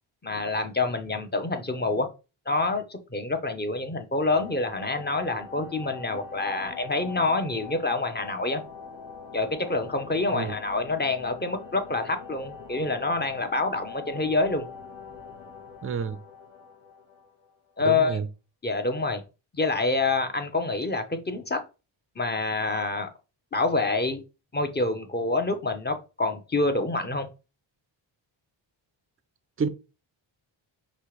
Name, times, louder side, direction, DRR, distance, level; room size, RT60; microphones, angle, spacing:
voice 1, 0.2-2.1 2.5-8.6 9.3-14.7 17.8-18.2 18.6-19.2 19.5-21.6 22.2-23.1 23.5-24.2 24.5-27.3, left 3 dB, 20° left, 0.9 m, -27 dB
sound 1, 4.1-17.7, left 5 dB, 70° left, 1.3 m, -43 dB
voice 2, 15.8-16.2 17.8-18.3 29.6-29.7, right 5 dB, 30° right, 0.5 m, -28 dB
5.4 x 2.9 x 3.2 m
cardioid pair, 80°, 48 cm